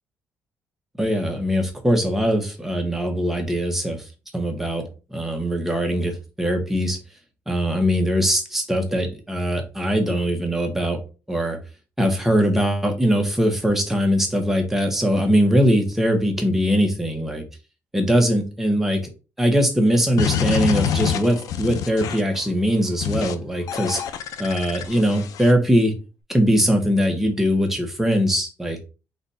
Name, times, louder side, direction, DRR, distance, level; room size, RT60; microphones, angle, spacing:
voice 1, 1.0-4.1 4.3-7.0 7.5-11.0 11.3-11.6 12.0-17.4 17.9-19.1 19.4-24.0 24.4-25.9 26.3-28.8, equal, 5° right, 3 dB, 1.1 m, -21 dB
sound 1, 20.2-22.4 23.0-23.3 23.7-25.5, left 9 dB, 80° left, 0.5 m, -26 dB
4.0 x 2.6 x 4.2 m, 0.32 s
cardioid pair, 120°, 6 cm